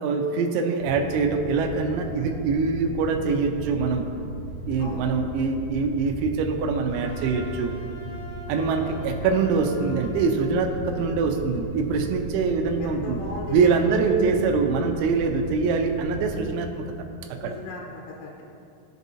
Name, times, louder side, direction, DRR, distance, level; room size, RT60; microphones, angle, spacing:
voice 1, 0.0-4.1 4.7-7.7 8.5-13.2 13.5-16.8 17.4-17.6, right 4 dB, 90° right, 4 dB, 3.6 m, -24 dB
sound 1, 0.8-16.5, right 1 dB, 70° right, 1.7 m, -37 dB
Wind instrument woodwind instrument, 6.9-10.6, equal, 50° left, 3.0 m, -42 dB
voice 2, 12.8-14.2 17.4-18.4, left 2 dB, 80° left, -2 dB, 3.3 m, -37 dB
17.5 x 7.1 x 2.7 m, 2.5 s
omnidirectional pair, 6.0 m